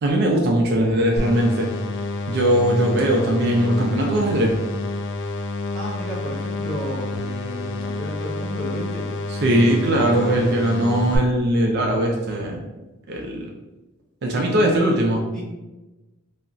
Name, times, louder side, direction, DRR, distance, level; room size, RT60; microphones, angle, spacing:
voice 1, 0.0-1.7 2.3-4.6 9.3-12.6 13.1-13.5 14.2-15.2, right 1 dB, 50° right, 0 dB, 0.4 m, -20 dB
sound 1, 1.2-11.2, left 2 dB, 55° left, 0.3 m, -29 dB
voice 2, 5.7-9.1 14.2-14.6 15.3-15.4, equal, ahead, -8 dB, 1.0 m, -33 dB
2.3 x 2.1 x 3.7 m, 1.1 s
head